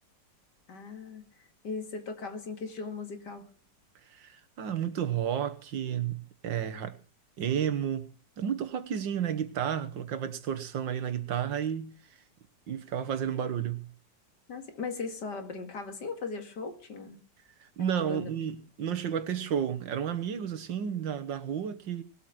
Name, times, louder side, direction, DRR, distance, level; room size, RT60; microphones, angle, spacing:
voice 1, 0.7-3.5 14.5-17.2 17.8-18.3, left 4 dB, 65° left, 2.7 m, -38 dB
voice 2, 4.1-7.0 7.4-8.1 8.4-11.9 12.7-13.9 17.6-22.0, right 9 dB, 90° right, 2.0 m, -32 dB
20.0 x 8.5 x 6.0 m
omnidirectional pair, 2.0 m